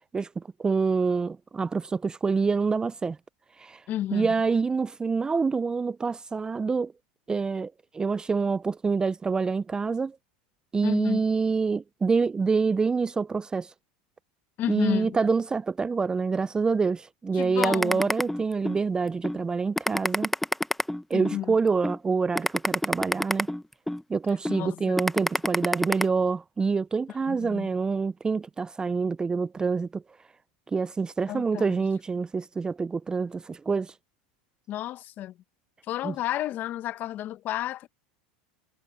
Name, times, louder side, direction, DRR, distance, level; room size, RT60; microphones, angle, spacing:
voice 1, 0.1-3.2 3.6-3.8 4.1-6.9 7.3-10.2 10.7-13.7 14.7-20.3 21.1-23.5 24.1-30.0 30.7-33.9 36.0-36.1, right 4 dB, 15° right, 0.5 m, -26 dB
voice 2, 3.9-4.3 10.8-11.2 14.6-15.2 17.3-18.1 21.1-21.6 24.5-25.0 27.3-27.7 31.3-31.8 34.7-35.3 35.9-37.9, left 13 dB, 45° left, 1.4 m, -32 dB
sound 1, 17.6-18.8 19.2-19.4 19.8-21.4 21.8-22.0 22.3-24.0 24.4-24.6 25.0-26.0, left 1 dB, 5° left, 0.9 m, -26 dB
hypercardioid pair, 100°, 4 cm